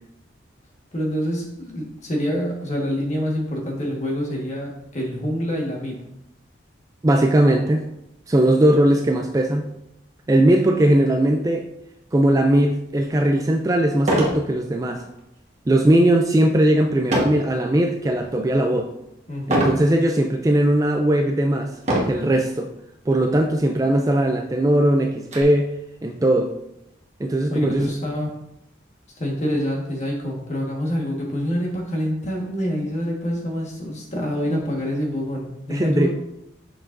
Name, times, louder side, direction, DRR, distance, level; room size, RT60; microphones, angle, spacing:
voice 1, 0.9-6.0 19.3-19.8 27.5-28.3 29.2-36.1, equal, 35° left, -1 dB, 1.5 m, -26 dB
voice 2, 7.0-7.8 8.3-9.7 10.3-11.7 12.1-15.0 15.7-18.9 19.5-21.7 22.1-22.7 23.1-25.7 26.0-26.6 27.2-27.9 35.7-36.1, right 1 dB, 20° right, 4 dB, 0.3 m, -19 dB
sound 1, 13.1-13.2 14.0-14.4 14.9-15.2 17.1-17.5 18.1-18.5 19.5-19.9 20.6-20.7 21.8-22.3 23.3-23.4 23.8-23.9 24.3-25.4, right 1 dB, 35° right, 1.3 m, -23 dB
6.6 x 6.1 x 2.6 m, 0.83 s
head